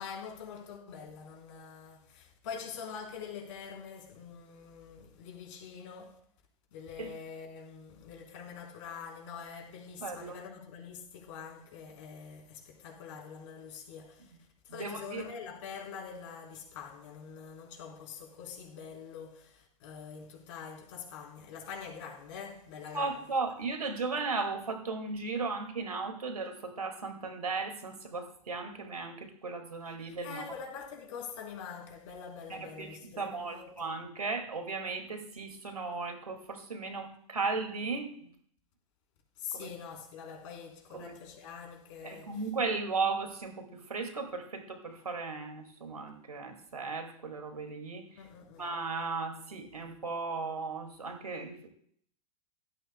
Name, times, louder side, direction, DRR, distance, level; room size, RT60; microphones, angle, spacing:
voice 1, 0.0-6.2 6.7-14.3 14.6-23.2 30.0-33.7 39.4-42.3 48.2-48.6, left 6 dB, 55° left, 3.8 m, -45 dB
voice 2, 10.0-10.4 14.7-15.2 22.9-30.4 32.5-38.3 39.5-39.7 40.9-41.1 42.0-48.0 48.6-51.7, right 4 dB, 85° right, 2.2 m, -36 dB
16.0 x 13.5 x 2.2 m
figure-of-eight pair, 95°, 19 cm